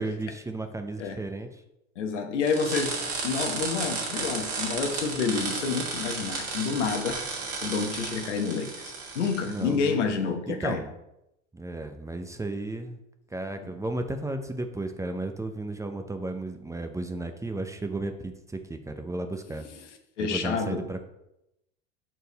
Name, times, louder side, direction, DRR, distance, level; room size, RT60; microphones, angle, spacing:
voice 1, 0.0-1.6 9.4-10.0 10.5-10.9 11.5-13.0 13.3-19.6 20.2-21.0, right 2 dB, 10° right, 6 dB, 0.6 m, -34 dB
voice 2, 2.0-3.0 3.2-7.2 7.6-10.8 13.6-13.7 20.2-20.8, left 5 dB, 85° left, 5 dB, 1.1 m, -29 dB
sound 1, 2.5-9.7, right 4 dB, 40° right, 2.1 m, -33 dB
6.5 x 4.5 x 4.0 m, 0.85 s
hypercardioid pair, 85°, 35 cm